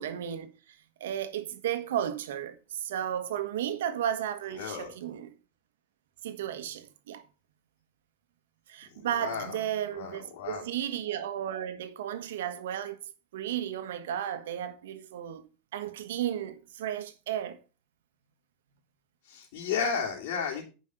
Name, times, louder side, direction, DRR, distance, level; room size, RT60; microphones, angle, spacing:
voice 1, 0.0-5.3 6.2-7.3 8.7-13.0 13.3-15.4 15.7-17.6, right 10 dB, 85° right, 1.4 m, -34 dB
voice 2, 4.5-4.9 9.0-9.6 9.9-10.7 19.2-20.6, left 6 dB, 70° left, 3.0 m, -33 dB
9.7 x 5.4 x 6.5 m
supercardioid pair, 140°, 0 cm